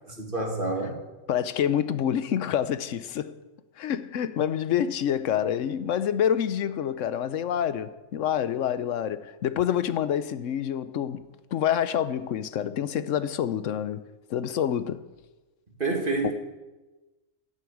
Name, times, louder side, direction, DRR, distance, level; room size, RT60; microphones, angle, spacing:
voice 1, 0.2-0.9 15.8-16.3, right 3 dB, 40° right, 2.4 m, -27 dB
voice 2, 1.3-3.4 3.8-11.2 11.5-14.0 14.3-15.0 16.2-16.3, left 9 dB, 70° left, 1.1 m, -27 dB
11.0 x 9.3 x 8.5 m
omnidirectional pair, 1.4 m